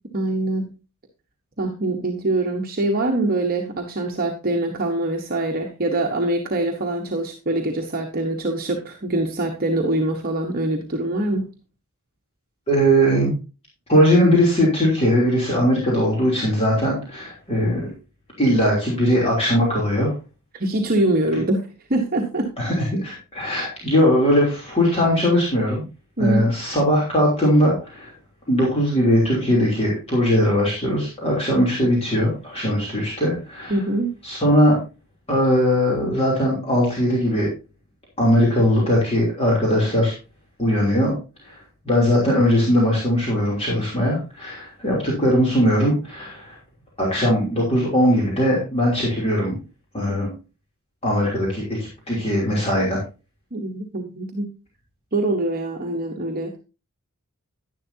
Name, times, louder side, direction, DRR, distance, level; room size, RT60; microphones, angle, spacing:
voice 1, 0.1-0.7 1.6-11.5 20.5-21.6 21.9-22.5 26.2-26.5 33.7-34.1 53.5-54.5 55.1-56.6, right 2 dB, 40° right, 2 dB, 1.1 m, -24 dB
voice 2, 12.7-13.4 13.9-17.9 18.4-20.1 22.6-25.8 26.2-28.1 28.5-33.7 34.2-34.8 35.3-37.5 38.2-40.1 40.6-41.1 41.4-41.5 41.8-46.5 47.0-49.6 49.9-50.3 51.0-53.0, equal, 30° left, -4 dB, 3.1 m, -20 dB
11.0 x 10.5 x 2.8 m, 0.30 s
head